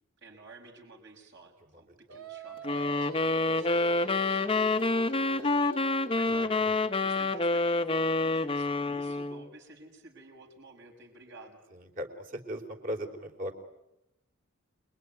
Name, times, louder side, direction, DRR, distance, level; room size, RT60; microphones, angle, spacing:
voice 1, 0.2-6.6 7.0-11.6, right 2 dB, 55° right, 3 dB, 6.6 m, -52 dB
Singing, 2.1-7.5, right 3 dB, 80° right, 2.0 m, -45 dB
sound 1, 2.6-9.5, left 2 dB, 25° left, 1.0 m, -27 dB
voice 2, 6.4-6.8 11.7-13.6, equal, 40° right, 4 dB, 3.7 m, -38 dB
28.5 x 22.0 x 9.5 m, 0.89 s
head